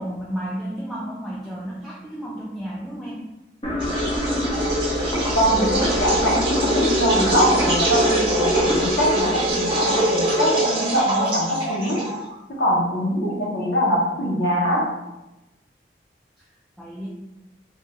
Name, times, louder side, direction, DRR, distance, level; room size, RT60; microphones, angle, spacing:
voice 1, 0.0-3.2 16.4-16.5 16.8-17.1, equal, ahead, -6 dB, 0.3 m, -32 dB
sound 1, 3.6-10.7, left 1 dB, 30° left, 0.7 m, -28 dB
sound 2, 3.8-12.3, right 1 dB, 30° right, 0.7 m, -23 dB
voice 2, 5.3-12.0 12.5-14.9, equal, 80° left, -2 dB, 0.7 m, -22 dB
3.4 x 2.2 x 2.8 m, 1.0 s
head